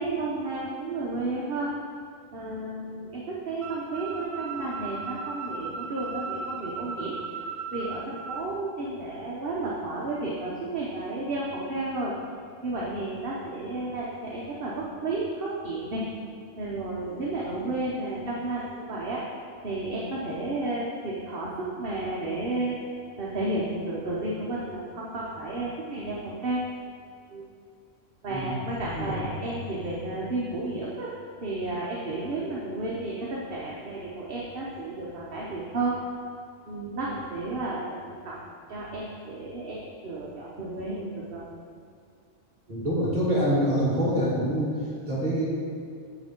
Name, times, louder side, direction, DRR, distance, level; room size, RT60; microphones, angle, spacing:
voice 1, 0.0-1.7 2.3-7.4 7.7-12.1 12.6-16.0 16.6-19.2 19.6-22.8 23.2-26.6 27.3-27.5 28.2-31.1 31.4-35.9 36.7-38.4 38.7-41.5, right 2 dB, 50° right, -5 dB, 1.2 m, -32 dB
sound 1, 3.6-8.4, right 5 dB, 80° right, 1.2 m, -36 dB
voice 2, 42.7-44.7 45.1-45.5, equal, 30° right, -6 dB, 2.3 m, -25 dB
7.8 x 7.0 x 4.4 m, 2.3 s
omnidirectional pair, 1.3 m